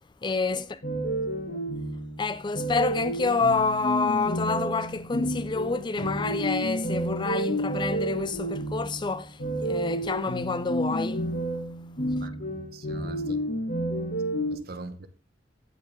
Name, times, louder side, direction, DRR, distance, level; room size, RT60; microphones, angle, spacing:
voice 1, 0.2-0.8 2.2-11.3, left 4 dB, 25° left, 0.4 m, -28 dB
sound 1, 0.8-14.5, right 1 dB, 55° left, 1.8 m, -30 dB
voice 2, 12.2-13.4 14.5-15.1, right 2 dB, 55° right, 1.0 m, -42 dB
15.0 x 5.1 x 3.6 m
head